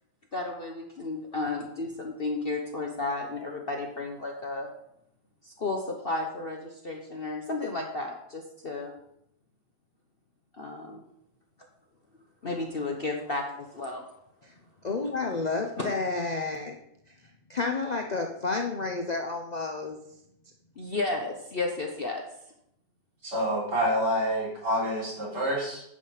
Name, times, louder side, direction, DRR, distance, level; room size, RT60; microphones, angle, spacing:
voice 1, 0.3-4.7 5.4-8.9 10.5-11.0 12.4-14.0 15.8-15.9 20.8-22.2, left 2 dB, 40° left, 1 dB, 0.9 m, -33 dB
voice 2, 14.8-16.8 17.5-20.0, left 3 dB, 65° left, 3 dB, 0.4 m, -30 dB
voice 3, 23.2-25.8, equal, 65° right, -6 dB, 4.3 m, -27 dB
9.9 x 5.3 x 5.7 m, 0.77 s
omnidirectional pair, 1.9 m